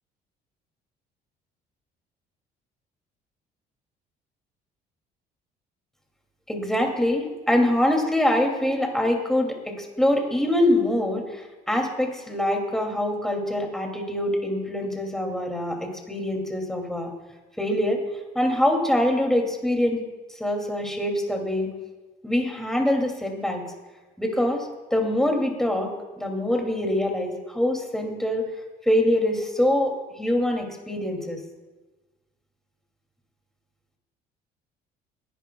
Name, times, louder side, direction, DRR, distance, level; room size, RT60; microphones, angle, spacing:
voice 1, 6.5-17.1 17.6-18.0 18.3-20.0 20.4-21.7 22.2-23.6 24.2-28.5 28.8-31.4, left 1 dB, 5° left, 1 dB, 2.6 m, -24 dB
27.5 x 11.0 x 2.3 m, 1.2 s
cardioid pair, 110°, 17 cm